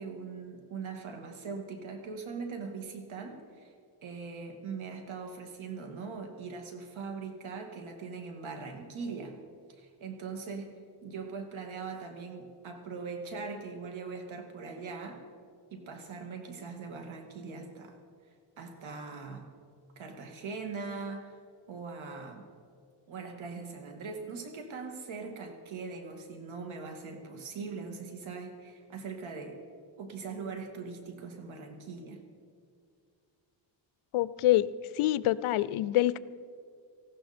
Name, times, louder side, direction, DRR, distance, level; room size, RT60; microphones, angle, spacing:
voice 1, 0.0-3.7 4.0-9.4 9.7-10.7 11.0-15.2 15.7-18.0 18.6-19.5 20.0-21.4 21.7-22.4 23.1-29.6 30.0-32.2, right 4 dB, 70° right, 4 dB, 2.4 m, -41 dB
voice 2, 34.1-34.7 34.9-36.2, left 15 dB, 90° left, 18 dB, 0.6 m, -26 dB
19.0 x 15.5 x 4.4 m, 2.3 s
cardioid pair, 135°, 48 cm